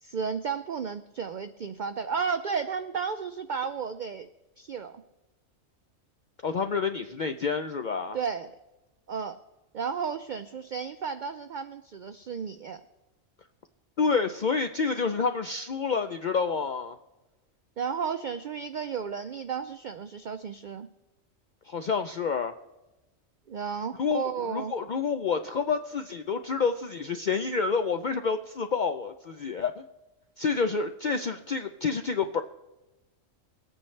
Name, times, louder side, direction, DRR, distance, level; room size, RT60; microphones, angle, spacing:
voice 1, 0.0-4.3 4.6-5.0 8.1-8.5 9.1-9.4 9.7-12.8 17.8-20.9 23.5-24.7, right 6 dB, 80° right, 10 dB, 0.4 m, -33 dB
voice 2, 6.4-8.2 14.0-17.0 21.7-22.6 24.0-29.8 30.4-32.4, left 5 dB, 65° left, 7 dB, 0.4 m, -28 dB
21.0 x 8.8 x 3.2 m, 1.1 s
omnidirectional pair, 1.4 m